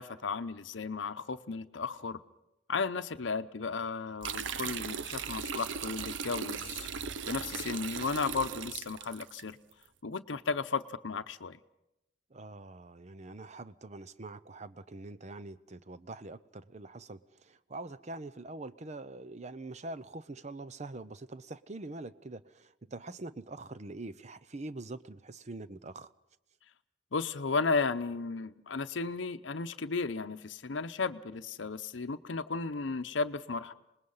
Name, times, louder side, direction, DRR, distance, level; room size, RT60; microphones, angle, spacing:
voice 1, 0.0-2.2 2.7-6.9 7.3-9.6 10.0-11.6 27.1-33.7, left 4 dB, 85° left, 0.7 m, -34 dB
sound 1, 4.2-9.4, right 6 dB, 80° right, 0.7 m, -38 dB
voice 2, 12.3-17.2 17.5-26.1, right 2 dB, 40° right, 0.7 m, -44 dB
26.0 x 20.0 x 5.6 m
head